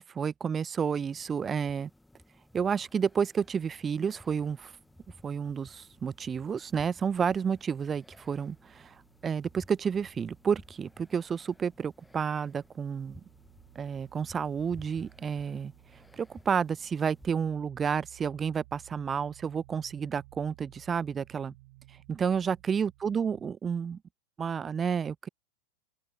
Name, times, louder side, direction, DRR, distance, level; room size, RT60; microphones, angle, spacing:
voice 1, 0.0-1.9 2.5-4.7 5.2-9.0 9.2-13.2 13.8-15.7 16.1-21.5 22.1-24.0 24.4-25.3, right 7 dB, 20° right, 0.4 m, -30 dB
sound 1, 1.0-17.4, left 1 dB, 5° left, 5.8 m, -57 dB
sound 2, 7.8-23.5, right 21 dB, 50° right, 6.0 m, -59 dB
open air
figure-of-eight pair, 90°, 0 cm